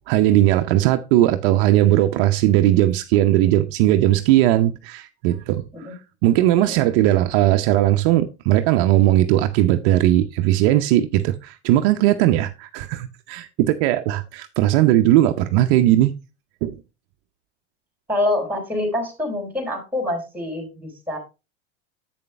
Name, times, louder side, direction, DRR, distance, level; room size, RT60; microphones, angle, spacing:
voice 1, 0.1-16.1 16.6-16.8, right 14 dB, 60° right, 0.7 m, -18 dB
voice 2, 18.1-21.2, left 1 dB, 5° right, 3.6 m, -26 dB
7.9 x 6.8 x 3.3 m
hypercardioid pair, 95°, 32 cm